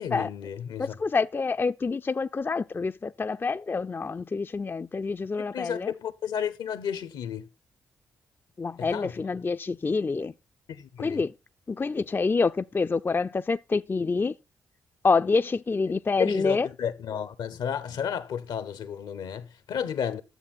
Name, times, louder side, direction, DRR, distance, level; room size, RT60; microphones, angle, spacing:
voice 1, 0.0-1.0 5.4-7.5 8.8-9.1 10.7-11.2 16.2-20.2, left 8 dB, 75° left, 0.9 m, -32 dB
voice 2, 0.8-5.9 8.6-10.3 11.0-11.3 11.7-14.3 15.0-16.7, left 4 dB, 30° left, 0.4 m, -27 dB
11.0 x 7.3 x 4.2 m
hypercardioid pair, 45°, 8 cm